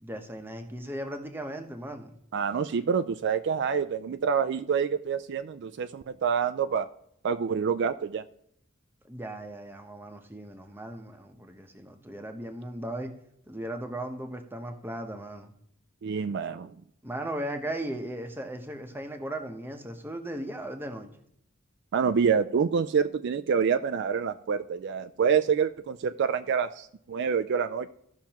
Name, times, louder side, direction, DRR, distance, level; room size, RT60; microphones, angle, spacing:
voice 1, 0.0-2.1 9.1-13.1 13.5-15.5 17.0-21.1, right 1 dB, 10° right, 0.9 m, -37 dB
voice 2, 2.3-6.9 7.2-8.2 16.0-16.7 21.9-27.9, right 6 dB, 60° right, 0.4 m, -27 dB
15.0 x 5.9 x 2.9 m
head